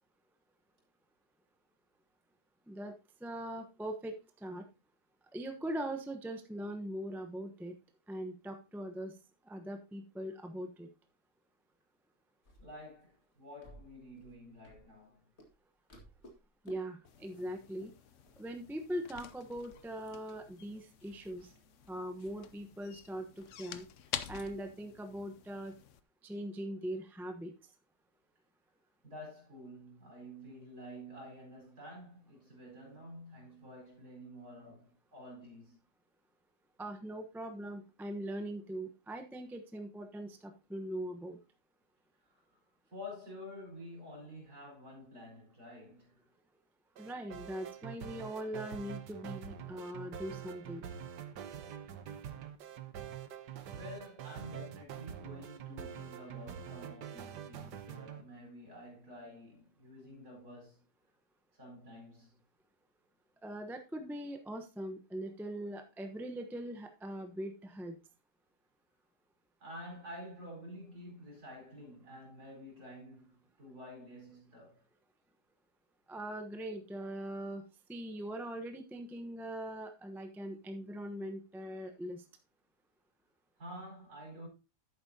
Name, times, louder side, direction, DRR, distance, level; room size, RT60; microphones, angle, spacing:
voice 1, 3.2-4.6 5.3-7.7 8.1-9.2 9.4-10.9 16.6-17.9 18.4-21.5 21.9-23.9 24.3-25.7 26.2-27.5 36.8-41.4 47.0-50.9 63.4-68.0 76.1-82.2, right 1 dB, ahead, 0.7 m, -41 dB
sound 1, 12.4-15.1 15.4-15.6 15.9-16.8 17.0-17.5 17.8-17.9 18.2-18.8 19.1-19.2 19.5-23.5, right 1 dB, 40° left, 2.4 m, -60 dB
voice 2, 12.6-15.3 29.0-35.8 42.2-42.6 42.9-46.2 53.6-60.8 61.5-62.3 69.6-74.8 83.6-84.5, left 1 dB, 65° right, 5.2 m, -50 dB
sound 2, 17.1-26.0, left 9 dB, 60° left, 0.9 m, -48 dB
sound 3, 47.0-58.2, right 9 dB, 90° right, 1.6 m, -45 dB
11.0 x 8.7 x 2.8 m
omnidirectional pair, 1.8 m